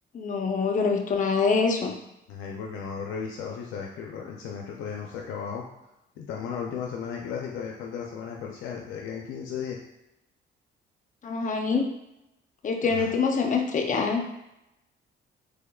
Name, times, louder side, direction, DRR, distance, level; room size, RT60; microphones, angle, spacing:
voice 1, 0.1-1.9 11.2-11.9 12.6-14.2, left 4 dB, 40° left, 2 dB, 0.6 m, -25 dB
voice 2, 2.3-5.7 6.2-9.8 13.0-13.1, left 6 dB, 90° left, -1 dB, 0.4 m, -35 dB
3.5 x 3.4 x 2.3 m, 0.87 s
cardioid pair, 90°, 20 cm